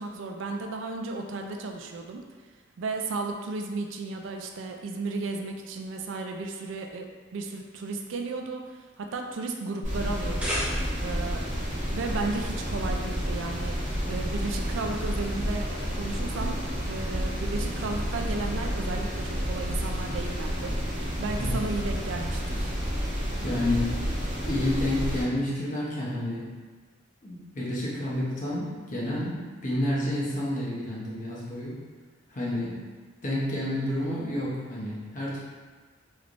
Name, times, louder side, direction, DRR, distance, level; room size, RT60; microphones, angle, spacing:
voice 1, 0.0-2.2 2.8-10.5 11.0-11.5 11.9-13.8 14.1-16.6 16.9-20.8 21.2-22.7, right 3 dB, 70° right, 3 dB, 0.4 m, -34 dB
sound 1, 9.8-25.2, equal, 40° right, 1.0 m, -30 dB
sound 2, 10.1-11.2, equal, 5° right, 0.7 m, -33 dB
voice 2, 23.4-24.0 24.4-26.5 27.2-31.7 32.3-32.8 33.2-35.4, left 1 dB, 40° left, -6 dB, 0.8 m, -29 dB
3.2 x 3.2 x 2.5 m, 1.4 s
head